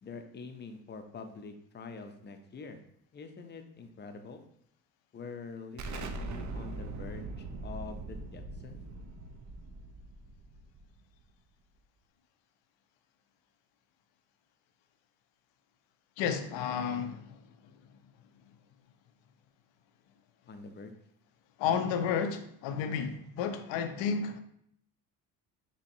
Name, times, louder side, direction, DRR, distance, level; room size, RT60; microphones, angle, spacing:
voice 1, 0.0-2.8 3.1-4.4 5.1-8.9 20.5-20.9 23.0-23.2, left 4 dB, 25° left, 6 dB, 0.5 m, -45 dB
Explosion, 5.8-11.2, right 2 dB, 45° right, 0.5 m, -41 dB
voice 2, 16.2-17.3 21.6-24.4, left 7 dB, 80° left, 8 dB, 0.6 m, -31 dB
4.2 x 2.8 x 2.6 m, 0.70 s
supercardioid pair, 85°, 44 cm